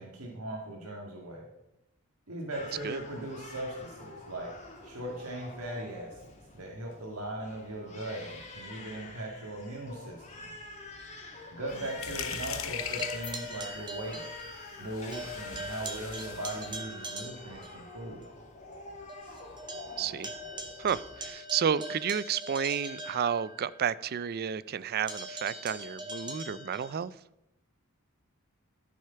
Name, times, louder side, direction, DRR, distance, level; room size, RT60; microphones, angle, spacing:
voice 1, 0.0-1.4 2.3-4.5 4.8-6.2 6.5-10.2 11.5-14.2 14.8-18.3, right 1 dB, 90° right, -1 dB, 2.0 m, -39 dB
Crying sobbing, 2.5-21.3, left 2 dB, 30° left, 2.0 m, -47 dB
sound 1, 11.7-16.8, left 8 dB, 70° left, 0.9 m, -40 dB
sound 2, 12.8-14.8 15.1-17.8 18.2-18.3 18.7-18.8 19.1-23.9 25.1-27.0, right 1 dB, 20° right, 1.4 m, -42 dB
voice 2, 20.0-20.3 20.8-27.1, right 7 dB, 45° right, 19 dB, 0.4 m, -31 dB
14.0 x 6.4 x 5.7 m, 0.86 s
head